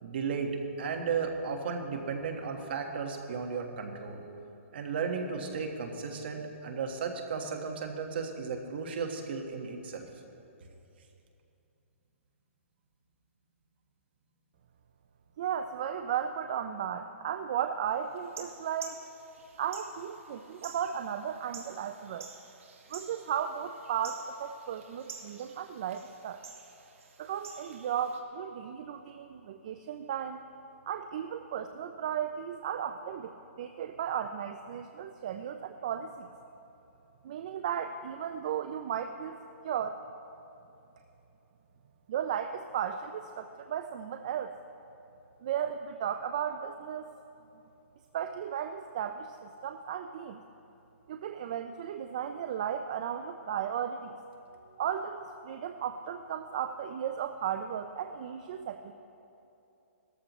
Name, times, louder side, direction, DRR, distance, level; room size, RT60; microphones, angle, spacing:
voice 1, 0.0-4.2 4.7-10.1, right 5 dB, 50° right, 3 dB, 1.4 m, -34 dB
voice 2, 15.4-19.0 19.6-22.3 22.9-26.4 27.2-30.4 30.9-36.3 37.2-39.4 39.6-40.0 42.1-44.5 45.4-47.1 48.1-50.4 51.1-54.2 54.8-58.9, right 8 dB, 30° right, 8 dB, 0.3 m, -35 dB
sound 1, 18.2-28.2, right 5 dB, 70° right, 1.8 m, -50 dB
17.0 x 13.5 x 3.1 m, 2.9 s
hypercardioid pair, 170°, 7 cm